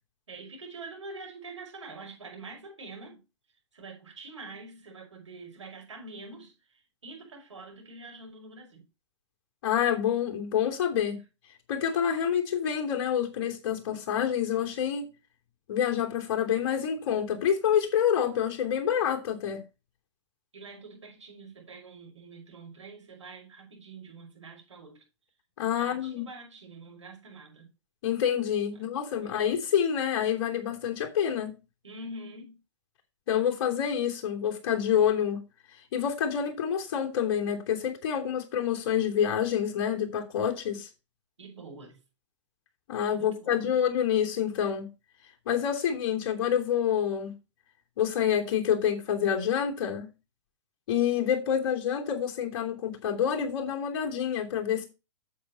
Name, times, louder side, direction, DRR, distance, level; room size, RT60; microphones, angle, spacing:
voice 1, 0.3-3.2 3.7-8.9 20.5-25.0 25.8-27.7 28.7-28.8 29.1-29.4 31.8-32.6 41.4-42.0 43.1-43.7, right 3 dB, 75° right, 6.0 m, -45 dB
voice 2, 9.6-11.2 11.7-15.1 15.7-19.6 25.6-26.3 28.0-31.6 33.3-35.4 35.9-40.9 42.9-44.9 45.4-47.3 48.0-50.1 50.9-54.8, left 9 dB, 50° left, 3.1 m, -27 dB
8.5 x 7.7 x 4.3 m
figure-of-eight pair, 110°, 15 cm